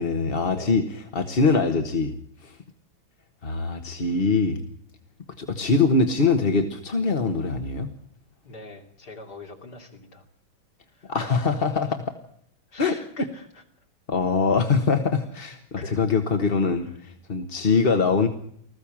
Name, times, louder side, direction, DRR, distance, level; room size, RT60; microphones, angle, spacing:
voice 1, 0.0-2.1 2.4-2.6 3.4-4.6 5.4-7.9 11.1-12.0 12.8-12.9 14.1-18.3, left 4 dB, 35° left, 6 dB, 1.3 m, -23 dB
voice 2, 8.4-10.2 10.9-11.5 11.8-11.9 12.7-13.6 15.8-16.0 16.7-16.8, left 3 dB, 55° left, 3 dB, 3.5 m, -43 dB
20.0 x 15.0 x 8.7 m, 0.70 s
omnidirectional pair, 2.1 m